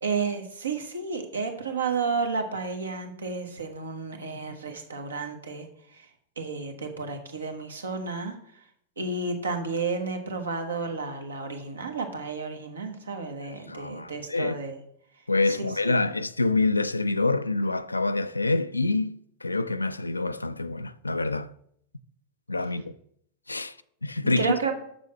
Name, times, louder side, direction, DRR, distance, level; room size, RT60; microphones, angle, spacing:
voice 1, 0.0-5.7 5.9-6.1 6.4-8.3 9.0-14.8 15.5-16.0 24.4-24.7, right 4 dB, 70° right, 1.1 m, -31 dB
voice 2, 13.5-14.6 15.3-21.5 22.5-22.9 23.5-23.7 24.0-24.5, left 3 dB, 80° left, 0.3 m, -26 dB
6.8 x 6.3 x 4.3 m
figure-of-eight pair, 90°, 0 cm